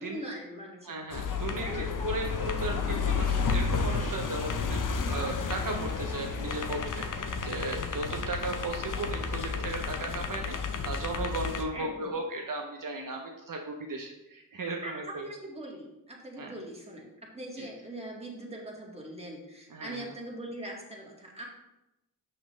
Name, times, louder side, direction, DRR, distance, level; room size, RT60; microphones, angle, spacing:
voice 1, 0.0-1.0 1.6-1.9 11.7-12.2 14.8-21.5, right 1 dB, 15° right, -2 dB, 1.8 m, -41 dB
voice 2, 0.8-10.6 10.8-15.3 16.4-16.5 17.6-17.7 19.7-20.1, right 2 dB, 65° right, 2 dB, 0.7 m, -36 dB
sound 1, 1.1-11.7, left 5 dB, 60° left, 0.6 m, -31 dB
6.2 x 5.8 x 3.1 m, 0.92 s
cardioid pair, 50°, 35 cm